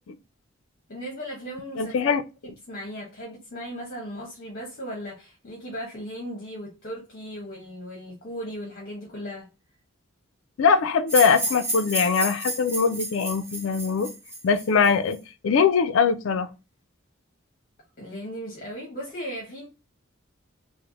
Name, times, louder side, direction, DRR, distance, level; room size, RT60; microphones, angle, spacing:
voice 1, 0.9-2.1 2.4-9.5 18.0-19.7, equal, 45° left, 0.9 m, -37 dB
voice 2, 1.8-2.2 10.6-14.1 14.4-15.2 15.4-16.5, left 5 dB, 70° left, 0.4 m, -22 dB
sound 1, 11.1-15.1, right 1 dB, 10° right, 0.8 m, -31 dB
3.3 x 2.0 x 3.7 m
head